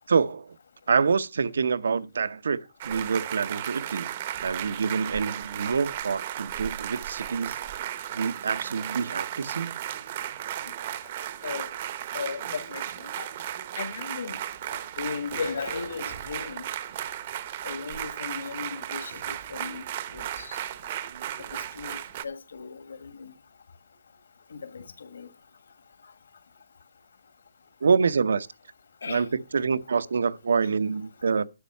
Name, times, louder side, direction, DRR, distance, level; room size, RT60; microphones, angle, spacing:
voice 1, 0.1-0.6 0.9-2.6 2.8-4.1 4.4-7.6 8.1-9.8 27.8-28.5 29.0-31.4, right 5 dB, 70° right, 0.7 m, -26 dB
sound 1, 2.8-22.2, right 11 dB, 30° right, 0.7 m, -35 dB
voice 2, 12.1-13.3 13.8-14.4 15.0-16.6 17.6-19.8 20.1-20.6 21.7-22.0 22.2-23.3 24.5-25.3 29.0-29.2, left 5 dB, 70° left, 1.6 m, -36 dB
11.5 x 6.4 x 5.4 m
hypercardioid pair, 175°, 0 cm